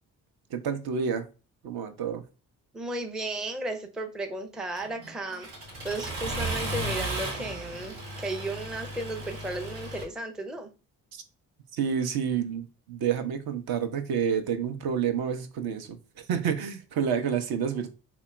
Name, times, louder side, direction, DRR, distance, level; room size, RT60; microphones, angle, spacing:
voice 1, 0.5-1.2 1.6-2.2 11.1-11.2 11.7-17.9, right 7 dB, 55° right, 0.6 m, -29 dB
voice 2, 2.7-5.5 5.8-10.7, right 2 dB, ahead, 0.4 m, -34 dB
Accelerating revving vroom, 4.8-10.0, right 1 dB, 75° right, 1.1 m, -35 dB
3.0 x 2.1 x 3.3 m
hypercardioid pair, 40°, 46 cm